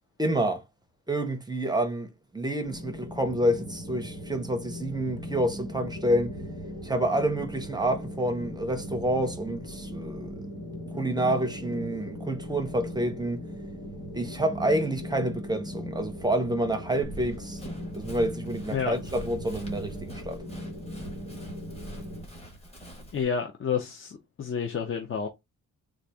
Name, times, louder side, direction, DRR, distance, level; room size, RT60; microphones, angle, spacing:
voice 1, 0.2-0.6 1.1-6.3 6.8-10.4 10.9-13.4 14.1-17.6 17.9-20.4, right 1 dB, 15° right, 0.6 m, -28 dB
sound 1, 2.6-22.2, equal, 80° left, 1.6 m, -39 dB
Run, 17.0-23.2, equal, 20° left, 1.2 m, -44 dB
voice 2, 18.7-19.0 23.1-25.3, left 6 dB, 40° left, 0.6 m, -30 dB
4.0 x 2.4 x 4.6 m
wide cardioid pair, 180°, 32 cm